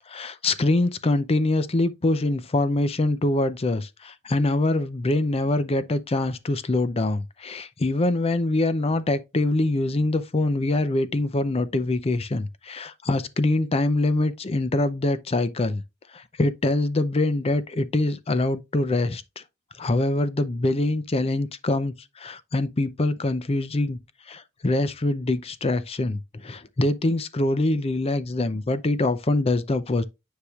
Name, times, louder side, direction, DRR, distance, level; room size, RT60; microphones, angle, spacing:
voice 1, 0.1-15.8 16.1-19.4 19.8-24.0 24.3-30.0, left 2 dB, 25° left, 0.5 m, -24 dB
9.8 x 4.8 x 2.4 m
head